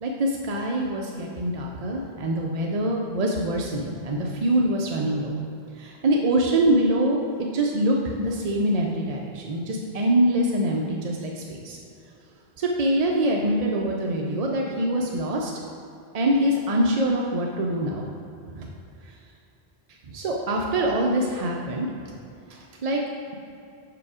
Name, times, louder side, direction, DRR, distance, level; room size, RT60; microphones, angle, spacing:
voice 1, 0.0-5.3 5.8-7.2 7.5-11.8 12.6-15.5 16.1-18.0 18.5-18.7 20.1-21.9 22.5-23.0, right 1 dB, 50° right, -1 dB, 0.5 m, -24 dB
5.9 x 4.8 x 4.8 m, 2.6 s
omnidirectional pair, 1.1 m